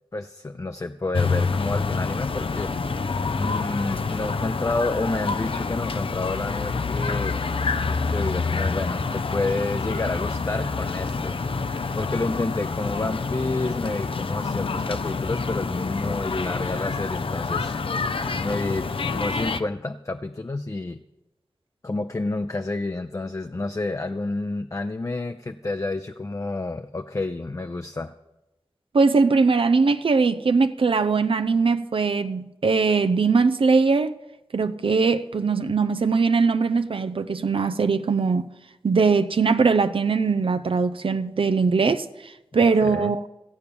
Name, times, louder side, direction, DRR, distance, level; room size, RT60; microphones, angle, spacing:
voice 1, 0.1-2.7 3.3-7.5 8.0-11.4 11.9-17.7 18.4-21.0 21.8-28.1 42.8-43.1, left 2 dB, 35° left, 0.5 m, -29 dB
sound 1, 1.1-19.6, left 4 dB, 80° left, 0.6 m, -27 dB
voice 2, 28.9-34.2 34.5-38.5 38.8-43.2, right 4 dB, 80° right, 0.6 m, -21 dB
14.5 x 8.3 x 6.9 m
wide cardioid pair, 55°, 9 cm